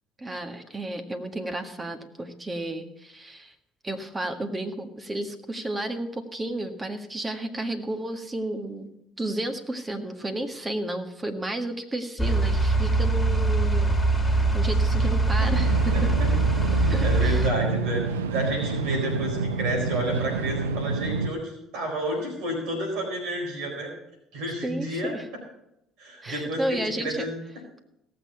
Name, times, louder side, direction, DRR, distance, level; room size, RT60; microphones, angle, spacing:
voice 1, 0.2-3.5 3.8-8.9 9.2-13.9 14.3-16.1 16.7-17.5 24.6-25.3 26.2-27.3, right 1 dB, 20° right, 6 dB, 1.7 m, -32 dB
sound 1, 12.2-17.5, right 2 dB, 10° left, 2.3 m, -22 dB
sound 2, 15.5-21.3, right 4 dB, 85° right, 0.6 m, -28 dB
voice 2, 15.9-16.3 16.8-18.0 18.3-23.9 24.3-25.1 26.0-27.4, right 1 dB, 70° right, 2 dB, 4.3 m, -30 dB
17.5 x 6.8 x 5.8 m, 0.81 s
hypercardioid pair, 60°, 0 cm